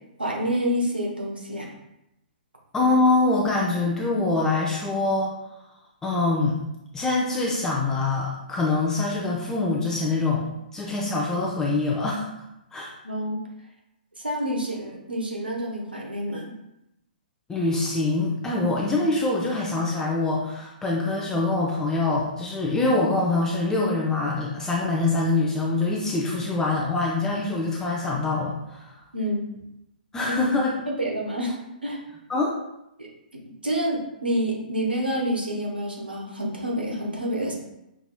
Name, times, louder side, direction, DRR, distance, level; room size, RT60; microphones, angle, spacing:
voice 1, 0.2-1.7 13.0-13.4 14.2-16.5 29.1-29.5 30.5-30.6 30.9-32.0 33.0-37.5, equal, 90° right, -1 dB, 1.0 m, -28 dB
voice 2, 2.7-5.3 6.0-6.6 6.9-10.5 10.7-12.3 12.7-12.9 17.5-29.0 30.1-30.7 32.3-32.5, left 3 dB, 10° left, -3 dB, 0.5 m, -24 dB
5.8 x 2.9 x 2.2 m, 0.87 s
figure-of-eight pair, 120°, 5 cm